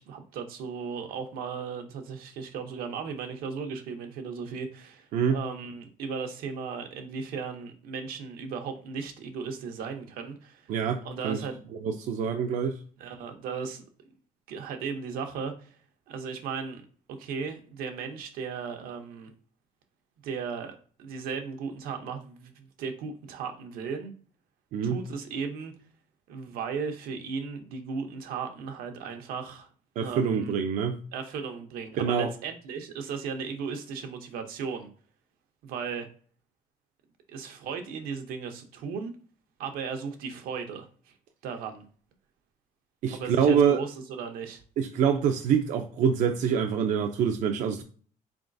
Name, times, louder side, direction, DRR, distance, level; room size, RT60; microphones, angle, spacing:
voice 1, 0.0-5.1 5.3-10.7 11.0-11.6 13.0-13.8 14.5-15.8 16.1-16.8 17.2-19.3 20.2-24.1 24.8-25.7 26.3-29.7 30.0-30.5 31.1-34.9 35.6-36.1 37.3-39.1 39.6-41.1 41.4-41.8 43.1-44.6, right 5 dB, 80° right, 5 dB, 0.8 m, -36 dB
voice 2, 10.7-11.5 11.8-12.8 24.7-25.0 30.0-31.0 32.0-32.3 43.0-43.8 44.8-47.8, right 7 dB, 60° right, 5 dB, 0.4 m, -25 dB
3.9 x 3.4 x 2.6 m, 0.43 s
cardioid pair, 155°, 15 cm